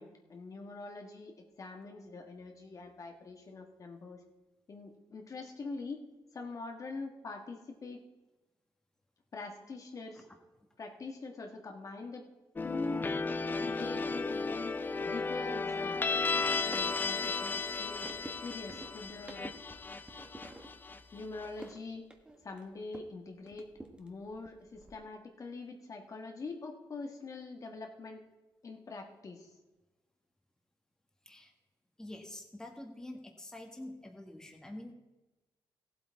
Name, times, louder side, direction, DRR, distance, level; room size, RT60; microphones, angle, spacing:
voice 1, 0.0-4.2 4.7-6.0 6.3-8.0 9.3-10.2 10.8-12.2 12.6-13.1 13.4-14.7 15.0-16.0 16.6-18.1 18.4-19.4 20.8-22.0 22.4-23.7 24.0-28.2 28.6-29.5, left 3 dB, 40° left, 3 dB, 1.5 m, -44 dB
sound 1, 12.6-21.4, left 4 dB, 25° left, 0.5 m, -34 dB
sound 2, 16.1-23.2 23.5-24.9, right 1 dB, 10° right, 1.3 m, -52 dB
voice 2, 32.0-34.9, left 1 dB, 10° left, 3 dB, 1.6 m, -46 dB
15.5 x 8.0 x 4.7 m, 1.1 s
cardioid pair, 100°, 8 cm